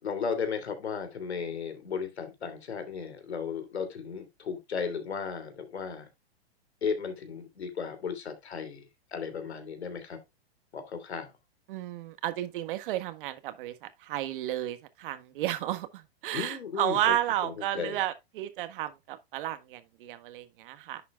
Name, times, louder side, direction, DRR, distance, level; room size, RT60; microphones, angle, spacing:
voice 1, 0.0-6.1 6.8-10.2 10.7-11.3 16.3-17.2 17.4-18.0, left 6 dB, 85° left, 3.0 m, -35 dB
voice 2, 11.7-21.0, right 13 dB, 55° right, 1.6 m, -32 dB
10.5 x 6.8 x 2.3 m
hypercardioid pair, 125°, 32 cm